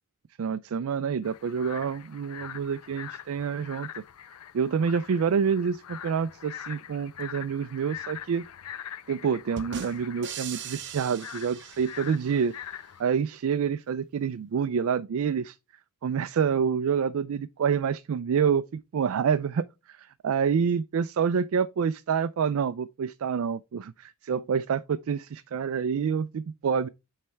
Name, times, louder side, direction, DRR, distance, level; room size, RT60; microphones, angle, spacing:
voice 1, 0.4-3.9 4.5-8.4 9.1-12.5 13.0-15.6 16.0-26.9, right 6 dB, 70° right, 0.4 m, -27 dB
sound 1, 1.2-13.0, left 10 dB, 85° left, 0.5 m, -43 dB
sound 2, 9.6-12.4, right 8 dB, 55° right, 0.7 m, -40 dB
8.5 x 3.3 x 4.4 m
head